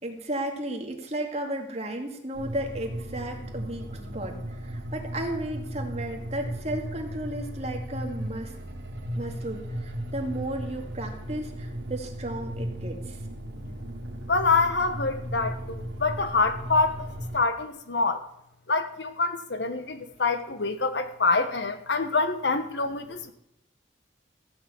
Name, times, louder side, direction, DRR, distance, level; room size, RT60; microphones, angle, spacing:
voice 1, 0.0-4.4 4.6-8.5 9.2-13.2, right 1 dB, 35° right, 2 dB, 2.2 m, -34 dB
sound 1, 2.3-17.4, equal, 90° right, 2.3 m, -36 dB
voice 2, 14.3-18.2 18.7-23.3, left 3 dB, 80° left, 9 dB, 1.3 m, -26 dB
15.0 x 6.7 x 8.4 m, 0.80 s
head